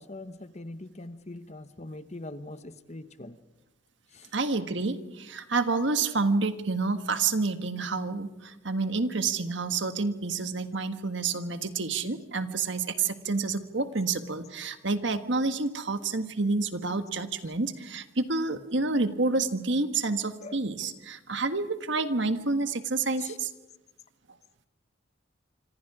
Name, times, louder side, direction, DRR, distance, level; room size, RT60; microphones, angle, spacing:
voice 1, 0.0-3.4 4.1-4.3 20.4-20.9 23.2-23.4, left 2 dB, 35° left, 12 dB, 1.1 m, -43 dB
voice 2, 4.3-23.5, right 3 dB, 65° right, 9 dB, 1.6 m, -29 dB
26.5 x 26.0 x 5.0 m, 0.98 s
head